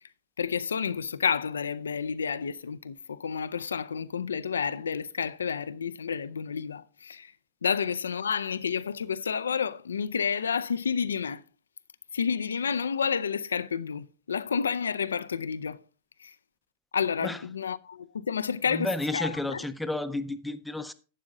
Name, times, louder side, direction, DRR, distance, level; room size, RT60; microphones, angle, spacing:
voice 1, 0.4-7.3 7.6-11.4 12.1-15.8 16.2-16.3 16.9-19.6, left 6 dB, 80° left, 0.4 m, -30 dB
voice 2, 18.7-20.9, left 1 dB, 5° left, 0.7 m, -32 dB
11.5 x 9.4 x 2.6 m
figure-of-eight pair, 95°, 0 cm